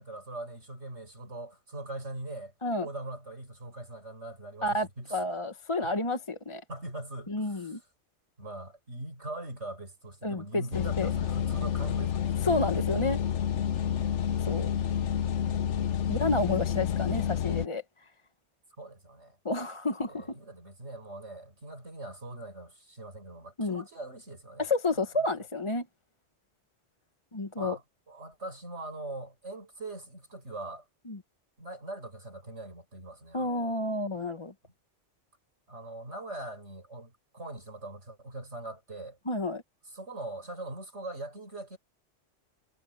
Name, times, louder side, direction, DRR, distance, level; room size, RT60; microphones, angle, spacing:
voice 1, 0.0-2.5 2.8-5.2 5.8-5.9 6.7-7.9 8.4-12.8 15.5-15.9 18.8-19.4 20.1-24.6 25.1-25.2 27.6-30.8 31.6-33.7 34.6-34.7 35.7-39.2 39.9-41.8, right 2 dB, 70° right, 6.3 m, -42 dB
voice 2, 4.6-6.6 7.3-7.8 10.2-11.1 12.4-13.2 14.4-14.7 16.1-17.8 19.4-20.4 23.6-23.8 24.6-25.8 27.3-27.8 31.1-31.2 33.3-34.5 39.3-39.6, left 2 dB, 25° left, 1.2 m, -30 dB
sound 1, 10.7-17.7, left 9 dB, 75° left, 1.1 m, -29 dB
omnidirectional pair, 1.2 m